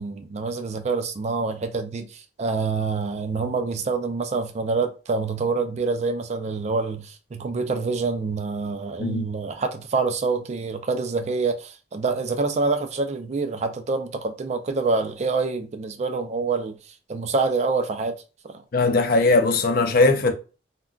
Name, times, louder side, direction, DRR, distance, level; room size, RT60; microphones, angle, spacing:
voice 1, 0.0-16.8 17.1-18.1 18.4-18.6, right 4 dB, 40° right, 0.3 m, -26 dB
voice 2, 18.7-20.3, left 3 dB, 55° left, 0.5 m, -19 dB
2.2 x 2.2 x 3.7 m
head